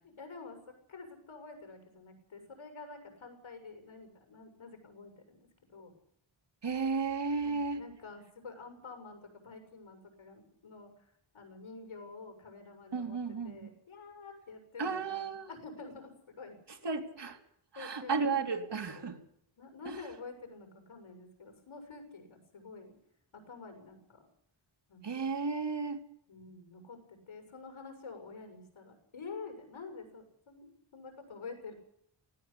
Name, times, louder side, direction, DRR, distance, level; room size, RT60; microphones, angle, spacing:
voice 1, 0.0-5.9 7.4-11.1 11.3-13.2 13.4-16.6 17.7-18.6 18.9-19.2 19.6-22.9 23.3-24.3 24.9-25.3 26.3-30.7 30.9-31.7, left 4 dB, 85° left, 5 dB, 6.9 m, -48 dB
voice 2, 6.6-7.8 12.9-13.6 14.8-15.5 16.8-17.4 17.7-19.2 19.9-20.0 25.0-26.0, right 4 dB, 60° right, 4 dB, 3.0 m, -33 dB
19.0 x 16.0 x 8.6 m, 0.70 s
wide cardioid pair, 140°, 47 cm